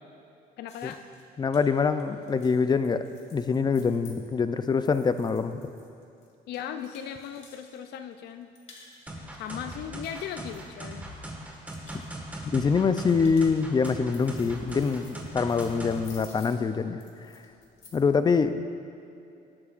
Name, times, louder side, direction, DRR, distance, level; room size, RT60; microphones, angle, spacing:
voice 1, 0.6-1.0 6.5-8.5 9.3-11.1, left 9 dB, 75° left, 8 dB, 0.6 m, -38 dB
sound 1, 0.7-7.8 8.1-9.1 9.5-11.1 11.5-12.1 12.8-18.2, left 3 dB, 45° left, 2.4 m, -54 dB
voice 2, 1.4-3.0 3.3-5.6 12.4-17.0 17.9-18.8, left 5 dB, 25° left, 10 dB, 0.5 m, -25 dB
sound 2, 9.1-16.0, right 1 dB, 10° right, 1.7 m, -39 dB
19.0 x 9.5 x 2.5 m, 2.6 s
cardioid pair, 110°, 17 cm